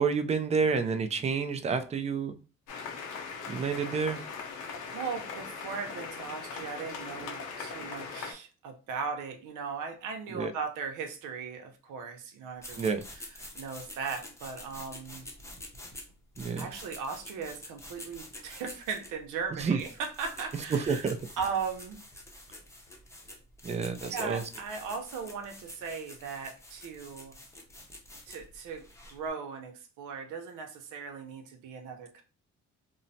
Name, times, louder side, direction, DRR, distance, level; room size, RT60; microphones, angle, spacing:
voice 1, 0.0-2.3 3.5-4.2 10.3-10.5 12.8-13.0 16.4-16.7 19.6-19.8 20.7-21.2 23.6-24.4, right 5 dB, 25° right, 0.4 m, -29 dB
sound 1, 2.7-8.3, left 5 dB, 80° left, 0.7 m, -40 dB
voice 2, 4.9-13.3 13.6-15.3 16.6-22.0 24.0-27.4 28.3-32.2, right 5 dB, 85° right, 0.6 m, -38 dB
sound 2, 12.6-29.3, left 1 dB, 10° left, 0.7 m, -48 dB
3.0 x 2.0 x 2.6 m
cardioid pair, 90°, 30 cm